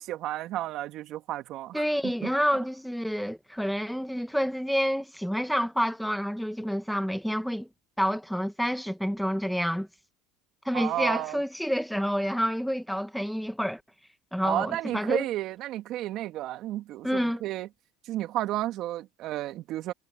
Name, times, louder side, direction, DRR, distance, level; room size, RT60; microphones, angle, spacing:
voice 1, 0.0-2.3 10.7-11.4 14.4-17.7 18.1-19.9, right 14 dB, 55° right, 2.6 m, -32 dB
voice 2, 1.7-7.7 8.0-9.9 10.6-13.8 14.3-15.3 17.0-17.4, equal, ahead, 1.7 m, -28 dB
supercardioid pair, 100°, 0 cm